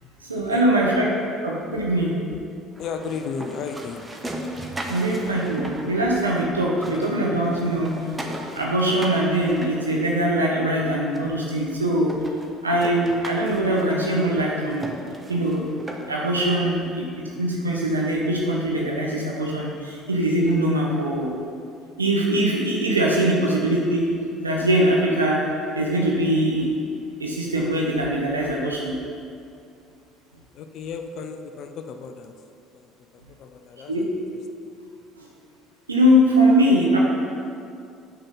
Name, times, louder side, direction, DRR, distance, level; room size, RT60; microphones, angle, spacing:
voice 1, 0.2-1.0 1.4-2.1 4.9-7.9 8.5-12.1 12.6-14.9 15.3-15.6 16.1-17.0 17.4-21.3 22.0-24.1 24.4-25.4 25.7-26.7 27.2-29.0 33.9-34.0 35.2-35.3 35.9-37.0, right 1 dB, 90° right, -2 dB, 0.8 m, -22 dB
sound 1, 2.7-6.4 6.7-10.5 11.1-11.2 11.7-11.8 12.1-16.3, right 1 dB, 15° right, 1.1 m, -37 dB
voice 2, 2.8-4.1 30.5-32.3 32.7-32.8 33.4-34.1, left 5 dB, 55° left, 6 dB, 0.5 m, -34 dB
6.5 x 5.9 x 5.7 m, 2.4 s
figure-of-eight pair, 60°, 0 cm